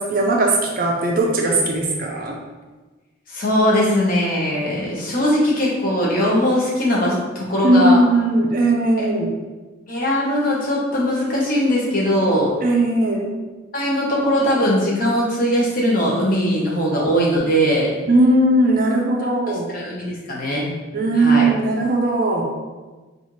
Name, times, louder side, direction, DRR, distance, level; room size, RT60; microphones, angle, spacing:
voice 1, 0.0-2.4 7.6-9.3 12.6-13.3 18.1-19.7 20.9-22.4, right 1 dB, 45° right, 0 dB, 0.4 m, -18 dB
voice 2, 3.3-8.0 9.9-12.5 13.7-17.9 19.5-20.6 21.2-21.5, equal, 40° left, -4 dB, 0.8 m, -20 dB
4.2 x 2.4 x 3.0 m, 1.3 s
head